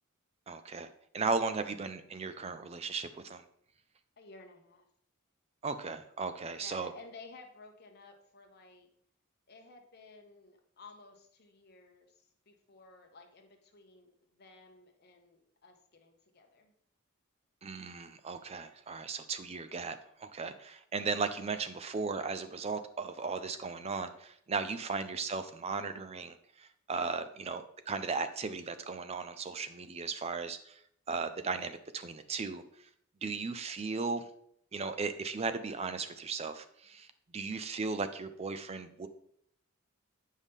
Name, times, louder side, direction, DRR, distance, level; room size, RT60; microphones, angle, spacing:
voice 1, 0.5-0.9 1.1-3.4 5.6-6.9 17.6-30.8 31.1-32.9 33.2-34.3 34.7-37.1 37.3-39.1, right 4 dB, 30° right, 11 dB, 0.4 m, -36 dB
voice 2, 4.2-4.8 6.6-8.9 9.5-16.7 27.3-27.5, left 3 dB, 50° left, 4 dB, 0.9 m, -55 dB
8.2 x 5.5 x 3.5 m, 0.69 s
head